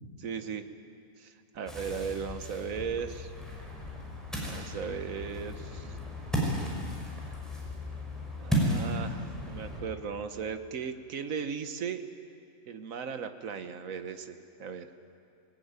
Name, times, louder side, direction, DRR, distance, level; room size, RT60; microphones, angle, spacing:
voice 1, 0.2-0.6 1.2-3.3 4.4-5.9 8.4-12.1 12.7-14.9, right 6 dB, 80° right, 8 dB, 1.5 m, -37 dB
Ocean, 1.7-9.8, equal, ahead, 5.4 m, -34 dB
21.0 x 20.0 x 9.6 m, 2.4 s
omnidirectional pair, 1.4 m